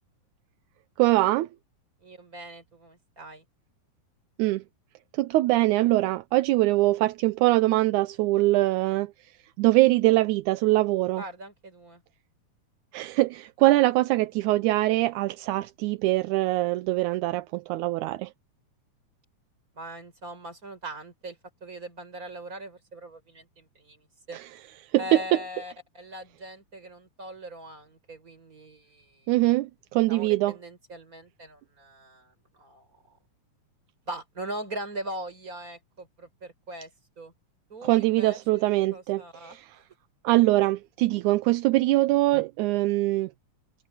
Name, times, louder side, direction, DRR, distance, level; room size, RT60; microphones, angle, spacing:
voice 1, 1.0-1.5 4.4-4.6 5.1-9.1 9.6-11.2 12.9-18.3 24.3-24.5 24.9-25.4 29.3-30.6 37.8-39.8 40.2-43.3, right 18 dB, 80° right, 2.0 m, -23 dB
voice 2, 2.0-3.4 11.1-12.0 19.7-24.4 25.0-29.3 30.1-33.2 34.1-36.9 37.2-37.3 37.7-39.8, right 1 dB, 25° right, 5.7 m, -41 dB
omnidirectional pair, 3.6 m